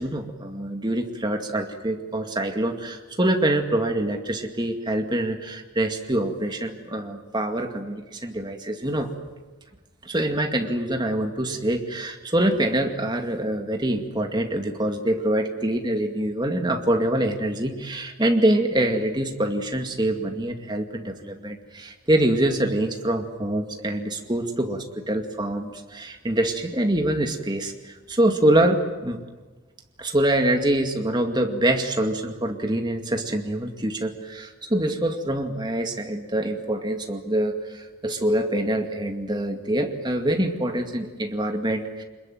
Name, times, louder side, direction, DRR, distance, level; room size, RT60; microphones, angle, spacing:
voice 1, 0.0-9.1 10.0-29.2 30.0-42.0, right 1 dB, 20° right, 4 dB, 2.2 m, -25 dB
26.0 x 21.5 x 9.3 m, 1.3 s
head